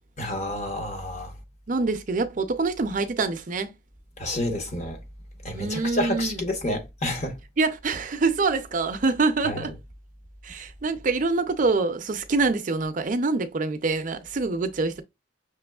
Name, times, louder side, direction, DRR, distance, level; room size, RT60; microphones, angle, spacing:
voice 1, 0.2-1.3 4.2-5.0 5.4-7.4 9.4-9.6, left 1 dB, 40° left, 1.0 m, -29 dB
voice 2, 1.7-3.7 5.5-6.4 7.6-9.7 10.4-15.0, right 3 dB, 45° right, 0.5 m, -25 dB
6.0 x 3.0 x 2.3 m
head